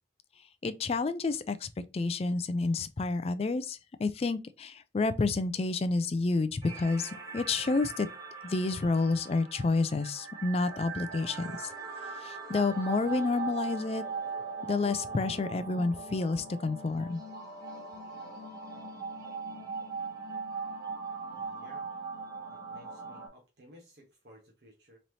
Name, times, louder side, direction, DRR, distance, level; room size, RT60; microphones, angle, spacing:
voice 1, 0.6-8.1 8.4-11.7 12.2-14.0 14.6-17.2, left 3 dB, 35° left, 0.3 m, -29 dB
sound 1, 6.6-23.3, right 4 dB, 20° right, 1.8 m, -40 dB
voice 2, 21.3-21.9 22.5-25.0, equal, 65° right, 1.1 m, -57 dB
4.0 x 3.2 x 2.7 m
head